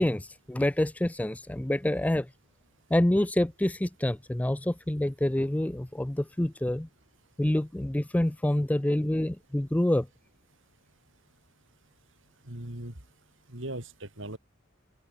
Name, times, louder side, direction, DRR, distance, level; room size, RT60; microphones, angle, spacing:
voice 1, 0.0-2.3 2.9-6.9 7.4-10.1, left 1 dB, 5° left, 0.4 m, -27 dB
voice 2, 12.5-12.9 13.5-14.4, right 1 dB, 65° right, 4.2 m, -38 dB
head